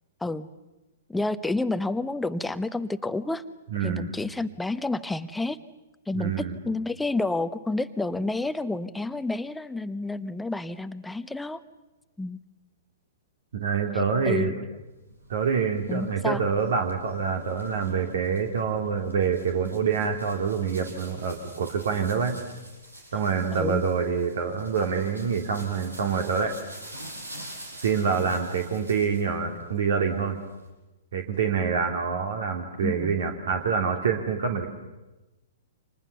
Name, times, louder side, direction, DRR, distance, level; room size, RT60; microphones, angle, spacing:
voice 1, 1.1-3.4 3.8-5.6 6.1-11.6 12.2-12.4 14.3-14.6 15.9-16.4 23.5-23.8 32.8-33.2, left 2 dB, 5° left, 12 dB, 1.1 m, -29 dB
voice 2, 3.7-4.1 6.1-6.6 13.5-14.5 15.3-22.3 23.1-26.5 27.8-30.4 31.1-34.7, right 6 dB, 60° right, 4 dB, 3.0 m, -26 dB
sound 1, 15.0-29.3 29.7-30.7, right 1 dB, 85° right, 7.0 m, -47 dB
29.5 x 26.5 x 6.9 m, 1.1 s
figure-of-eight pair, 110°, 0 cm